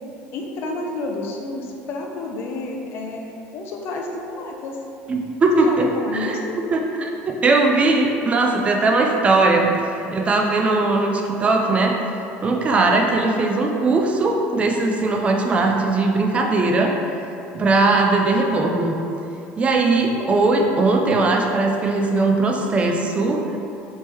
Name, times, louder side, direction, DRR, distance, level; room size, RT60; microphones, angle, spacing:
voice 1, 0.3-4.8 5.5-6.6, left 2 dB, 55° left, 1 dB, 0.5 m, -30 dB
voice 2, 5.1-5.9 6.1-6.4 6.7-9.7 10.1-12.0 12.4-16.9 17.5-19.0 19.6-23.4, right 3 dB, 25° right, 1 dB, 0.3 m, -19 dB
3.5 x 2.9 x 3.0 m, 2.7 s
cardioid pair, 120°, 5 cm